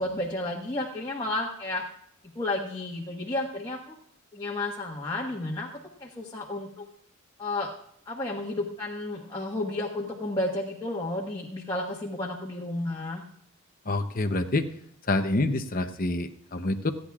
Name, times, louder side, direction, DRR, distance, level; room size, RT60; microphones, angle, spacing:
voice 1, 0.0-1.8 2.3-3.9 4.3-5.7 6.0-6.9 7.4-7.7 8.1-13.2, left 2 dB, 20° left, -3 dB, 1.4 m, -32 dB
voice 2, 13.9-14.7 15.1-16.9, left 2 dB, 40° left, 7 dB, 0.8 m, -27 dB
29.0 x 10.0 x 2.4 m, 0.68 s
head